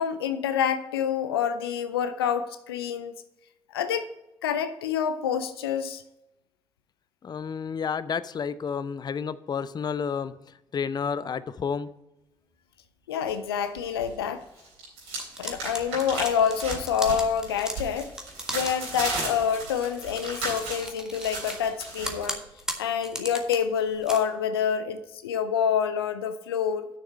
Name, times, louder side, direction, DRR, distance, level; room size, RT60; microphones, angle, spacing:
voice 1, 0.0-3.1 3.7-4.1 4.4-6.0 13.1-14.5 15.4-18.1 18.5-22.4 22.8-26.9, left 8 dB, 85° left, 11 dB, 0.5 m, -27 dB
voice 2, 7.2-10.3 10.7-11.9, left 6 dB, 35° left, 16 dB, 0.5 m, -30 dB
sound 1, 13.3-14.1 14.4-22.3, right 3 dB, 80° right, 3.8 m, -35 dB
sound 2, 15.2-19.4 20.0-21.6 21.9-23.6 23.9-24.2, equal, 5° right, 1.7 m, -37 dB
6.6 x 6.5 x 7.4 m, 0.92 s
figure-of-eight pair, 45°, 12 cm